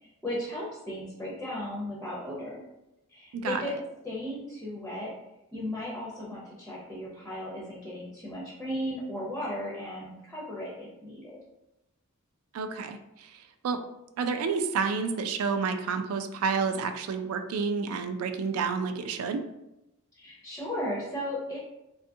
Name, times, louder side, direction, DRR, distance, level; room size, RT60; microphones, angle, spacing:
voice 1, 0.2-2.6 3.1-3.7 4.0-5.1 5.5-11.4 20.1-21.6, left 1 dB, 5° left, -6 dB, 0.5 m, -36 dB
voice 2, 12.5-13.4 13.6-13.8 14.2-19.4, right 5 dB, 80° right, 8 dB, 0.3 m, -29 dB
2.6 x 2.4 x 2.6 m, 0.90 s
head